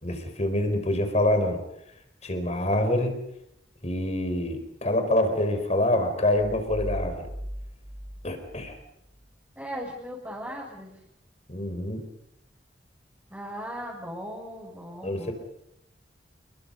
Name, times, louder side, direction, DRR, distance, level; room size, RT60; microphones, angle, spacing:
voice 1, 0.0-1.6 2.2-3.1 3.8-7.3 8.2-8.8 11.5-12.0 15.0-15.3, left 1 dB, 40° left, 7 dB, 4.8 m, -26 dB
sound 1, 6.4-9.3, equal, 30° right, 3.6 m, -38 dB
voice 2, 9.5-11.0 13.3-15.3, equal, 10° right, -5 dB, 6.2 m, -38 dB
29.0 x 23.0 x 5.5 m, 0.77 s
head